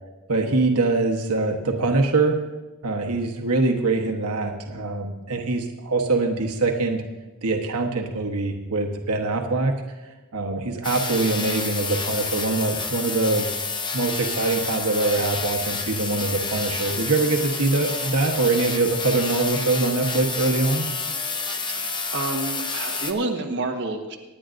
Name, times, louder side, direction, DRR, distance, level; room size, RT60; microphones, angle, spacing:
voice 1, 0.3-2.4 2.8-7.0 7.4-9.7 10.0-13.5 13.9-20.9, right 3 dB, 85° right, 3 dB, 1.2 m, -23 dB
sound 1, 10.8-23.1, left 4 dB, 20° left, 0.8 m, -29 dB
voice 2, 21.7-24.2, right 2 dB, 55° right, 1 dB, 1.4 m, -29 dB
25.5 x 10.0 x 2.6 m, 1.1 s
head